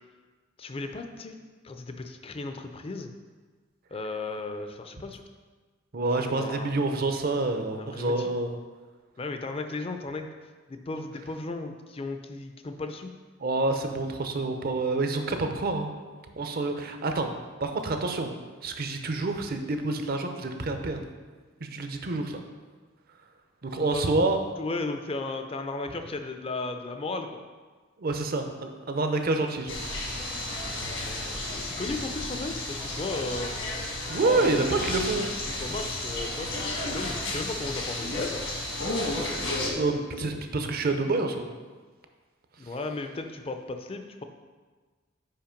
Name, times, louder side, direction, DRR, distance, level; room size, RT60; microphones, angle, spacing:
voice 1, 0.6-1.3 1.6-3.1 3.9-5.2 6.0-6.7 7.8-8.3 9.2-10.3 10.7-13.1 23.7-24.2 24.6-27.4 30.6-33.5 34.2-35.2 35.6-38.5 39.1-40.5 42.6-44.2, left 3 dB, 30° left, 6 dB, 0.5 m, -36 dB
voice 2, 5.9-8.5 13.4-15.9 16.4-17.3 17.6-18.3 18.6-21.0 21.7-22.4 23.6-24.5 28.0-29.8 34.1-35.3 39.7-41.5, right 2 dB, 45° right, 6 dB, 0.6 m, -27 dB
sound 1, 29.7-39.7, left 1 dB, 75° left, 1.5 m, -32 dB
5.7 x 5.0 x 5.1 m, 1.4 s
head